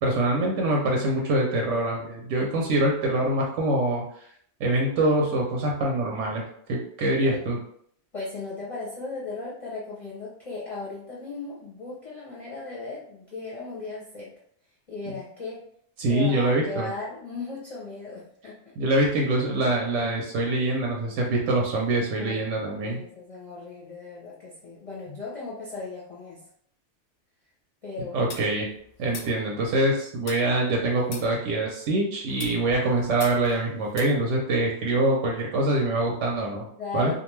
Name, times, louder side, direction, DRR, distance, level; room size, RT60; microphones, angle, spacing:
voice 1, 0.0-4.0 4.6-6.4 6.7-7.6 15.1-15.2 16.0-16.9 18.8-23.0 28.1-28.7 29.0-36.6 36.9-37.1, right 2 dB, 90° right, -1 dB, 0.9 m, -24 dB
voice 2, 8.1-14.3 14.9-15.6 16.1-18.6 22.2-22.4 22.8-26.4 27.8-28.4 36.8-37.2, left 3 dB, 40° left, -6 dB, 0.5 m, -37 dB
sound 1, 28.3-29.9 30.3-31.8 32.3-34.0, left 4 dB, 90° left, 0.9 m, -43 dB
2.5 x 2.2 x 3.0 m, 0.65 s
omnidirectional pair, 1.2 m